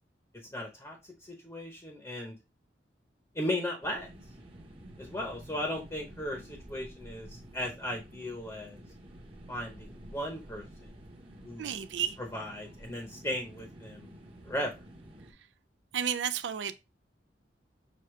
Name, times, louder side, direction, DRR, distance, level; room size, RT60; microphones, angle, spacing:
voice 1, 0.5-1.0 1.2-2.3 3.3-4.1 5.0-8.8 9.5-10.7 11.4-11.7 12.3-14.1 14.5-14.7, left 1 dB, 15° left, 0.8 m, -36 dB
sound 1, 3.8-15.3, right 1 dB, 30° right, 0.9 m, -50 dB
voice 2, 11.6-12.2 15.9-16.7, right 8 dB, 80° right, 0.5 m, -32 dB
6.2 x 2.7 x 3.1 m
head